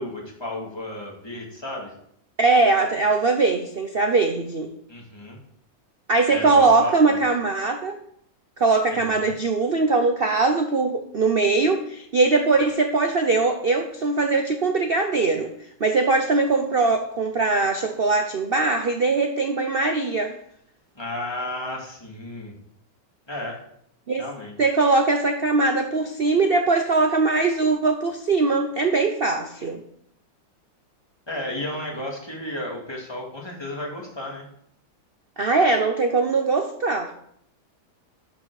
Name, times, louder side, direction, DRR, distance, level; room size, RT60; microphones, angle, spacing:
voice 1, 0.0-1.9 4.9-5.4 6.3-7.2 8.9-9.3 20.9-22.5 23.3-23.6 24.2-24.5 31.3-34.4, left 1 dB, 15° left, -1 dB, 2.3 m, -33 dB
voice 2, 2.4-4.7 6.1-8.0 8.6-15.5 15.8-20.3 24.1-24.2 24.6-29.8 35.4-37.1, right 3 dB, 80° right, 5 dB, 0.5 m, -21 dB
12.0 x 5.9 x 4.8 m, 0.69 s
omnidirectional pair, 2.1 m